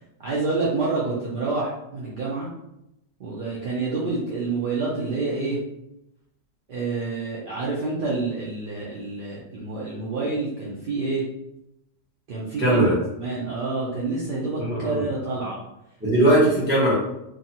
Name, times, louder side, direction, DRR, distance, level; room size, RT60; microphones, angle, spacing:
voice 1, 0.2-2.5 3.2-5.6 6.7-11.2 12.3-12.9 13.2-15.6, right 3 dB, 55° right, -6 dB, 0.6 m, -28 dB
voice 2, 12.6-12.9 14.6-15.0 16.0-16.9, right 1 dB, 10° right, -6 dB, 0.7 m, -19 dB
2.6 x 2.4 x 2.7 m, 0.85 s
omnidirectional pair, 1.4 m